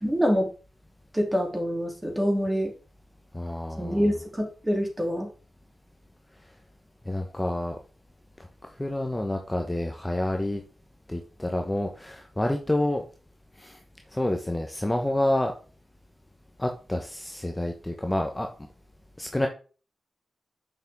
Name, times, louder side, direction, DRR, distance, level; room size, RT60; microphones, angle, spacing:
voice 1, 0.0-0.5 1.1-2.7 3.8-5.3, equal, 15° right, 1 dB, 2.9 m, -26 dB
voice 2, 3.3-4.1 7.0-7.8 8.4-10.6 11.1-13.0 13.6-13.8 14.1-15.5 16.6-18.5 19.2-19.5, left 1 dB, 15° left, 3 dB, 1.0 m, -28 dB
6.9 x 5.6 x 3.6 m, 0.36 s
cardioid pair, 55°, 0 cm